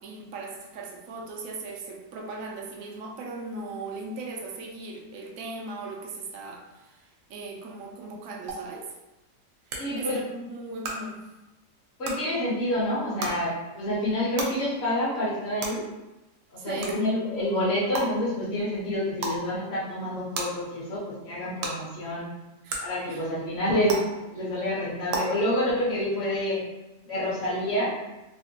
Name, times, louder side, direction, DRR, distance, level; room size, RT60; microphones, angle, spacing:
voice 1, 0.0-8.9 9.7-11.2 16.6-17.0 22.6-22.8 23.1-23.2, right 3 dB, 70° right, 1 dB, 0.8 m, -38 dB
sound 1, 8.5-8.6 9.7-9.8 10.8-10.9 12.0-12.1 13.2-13.3 14.4-14.5 15.6-15.7 16.8-16.9 17.9-18.0 19.2-19.4 20.3-20.4 21.6-21.7 22.7-22.8 23.9-24.0 25.1-25.2, right 4 dB, 90° right, 1.3 m, -30 dB
voice 2, 9.8-10.2 12.0-15.8 16.5-22.3 22.8-24.0 24.3-26.6 27.0-27.9, left 1 dB, 45° left, -7 dB, 1.1 m, -28 dB
3.4 x 2.3 x 2.7 m, 1.0 s
omnidirectional pair, 1.8 m